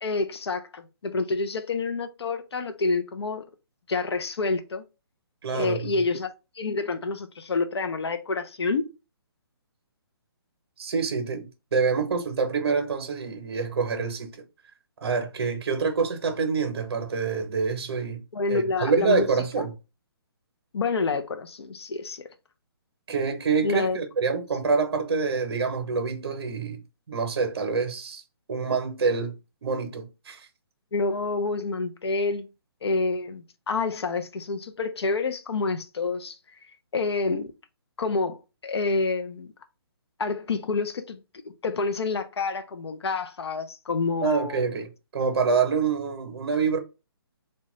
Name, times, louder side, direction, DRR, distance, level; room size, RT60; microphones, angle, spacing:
voice 1, 0.0-3.4 3.9-4.8 5.5-8.9 18.3-19.3 19.6-19.7 20.7-22.3 23.6-24.0 30.9-32.5 32.8-36.4 36.9-37.5 38.0-39.5 40.2-41.2 41.6-44.6, left 3 dB, 90° left, 0.5 m, -28 dB
voice 2, 5.4-5.9 10.8-14.4 15.0-19.7 23.1-26.8 27.1-28.2 28.5-29.4 29.6-30.5 44.2-46.8, right 5 dB, 70° right, 0.7 m, -26 dB
2.8 x 2.2 x 3.0 m
hypercardioid pair, 155°, 13 cm